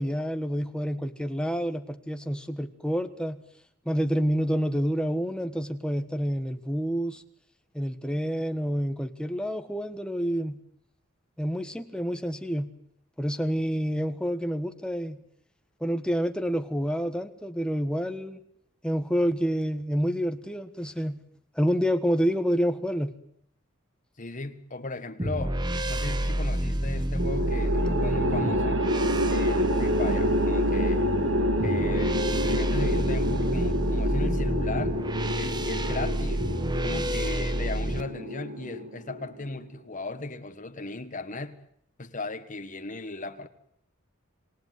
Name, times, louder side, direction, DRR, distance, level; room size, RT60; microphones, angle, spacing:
voice 1, 0.0-3.4 3.8-7.2 7.7-10.6 11.4-12.7 13.2-15.2 15.8-18.4 18.8-21.2 21.5-23.1, equal, 5° left, 1.4 m, -28 dB
voice 2, 24.2-25.6 25.9-28.9 29.3-31.1 31.6-35.0 35.4-36.4 36.8-41.6 42.0-43.5, left 3 dB, 40° left, 1.6 m, -37 dB
sound 1, 25.2-38.0, right 1 dB, 20° right, 1.3 m, -29 dB
sound 2, 27.2-39.5, equal, 70° right, 2.2 m, -28 dB
27.5 x 19.0 x 9.5 m
head